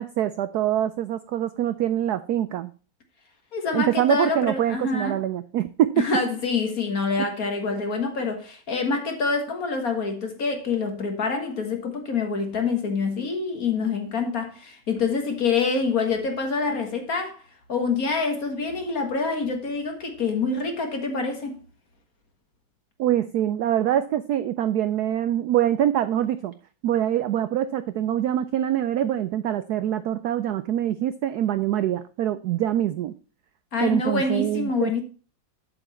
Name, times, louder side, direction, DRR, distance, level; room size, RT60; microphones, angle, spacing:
voice 1, 0.0-2.7 3.7-6.0 23.0-26.5 26.8-33.1 33.8-34.9, right 11 dB, 75° right, 0.9 m, -24 dB
voice 2, 3.5-5.2 6.0-17.4 17.7-21.6 33.7-35.0, left 4 dB, 45° left, 1.9 m, -26 dB
7.9 x 7.8 x 4.2 m
omnidirectional pair, 2.2 m